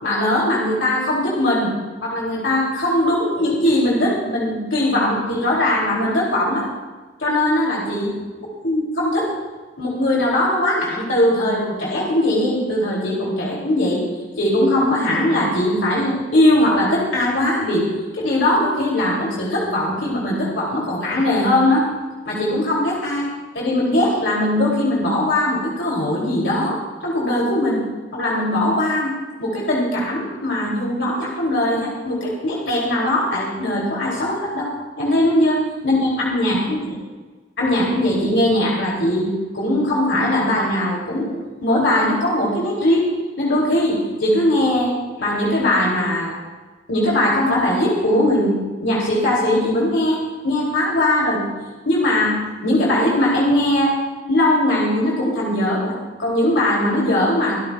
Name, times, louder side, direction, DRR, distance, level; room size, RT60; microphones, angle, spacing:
voice 1, 0.0-1.7 2.0-6.7 7.2-8.0 8.6-9.3 9.8-14.0 14.4-17.9 18.2-21.9 22.2-23.3 23.5-34.7 35.0-36.9 37.6-39.3 39.5-43.1 43.4-46.4 46.9-48.5 48.8-51.4 51.8-54.0 54.3-57.6, left 1 dB, 75° left, -4 dB, 3.0 m, -20 dB
24.0 x 13.5 x 2.4 m, 1.4 s
head